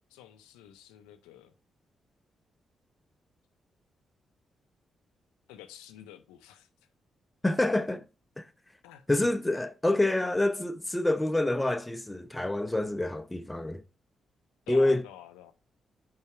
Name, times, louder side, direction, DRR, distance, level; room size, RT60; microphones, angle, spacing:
voice 1, 0.0-1.5 5.5-6.7 8.8-9.3 14.7-15.5, left 12 dB, 90° left, 0.5 m, -50 dB
voice 2, 7.4-8.0 8.4-8.5 9.1-13.8 14.7-15.0, left 2 dB, 15° left, 0.8 m, -27 dB
5.5 x 4.7 x 4.7 m
hypercardioid pair, 45°, 0 cm